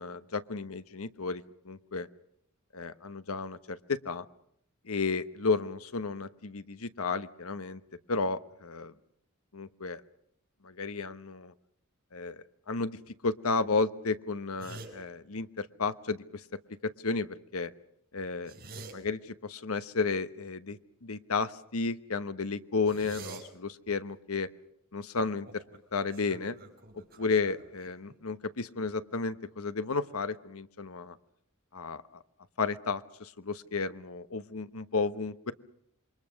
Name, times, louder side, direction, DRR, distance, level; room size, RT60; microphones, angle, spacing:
voice 1, 0.0-2.1 2.7-4.2 4.8-7.8 8.1-8.9 9.5-10.0 10.6-11.5 12.1-13.0 13.2-16.4 17.0-17.7 18.1-18.5 18.9-19.2 19.5-24.5 24.9-25.6 25.9-26.6 27.2-31.2 31.7-32.0 32.6-35.5, left 4 dB, 85° left, 12 dB, 1.1 m, -33 dB
sound 1, 14.6-14.9 18.3-18.9 22.9-23.4 25.5-25.8 26.1-28.2, right 3 dB, 45° right, 5.8 m, -46 dB
27.5 x 23.5 x 6.4 m, 0.69 s
head